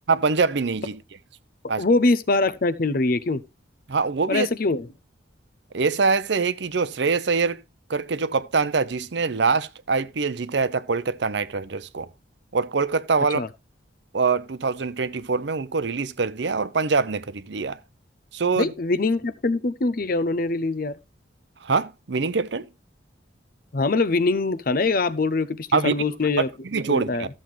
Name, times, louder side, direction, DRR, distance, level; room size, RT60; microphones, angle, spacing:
voice 1, 0.1-1.0 1.7-1.8 3.9-4.5 5.7-7.6 7.9-12.1 12.5-13.4 14.1-17.8 18.3-18.7 21.6-22.7 25.7-25.9 26.6-27.3, right 4 dB, 65° right, 0.7 m, -24 dB
voice 2, 1.8-3.4 4.3-4.9 13.3-13.5 18.6-21.0 23.7-26.5 26.9-27.3, left 3 dB, 50° left, 0.6 m, -23 dB
13.5 x 7.5 x 3.2 m
head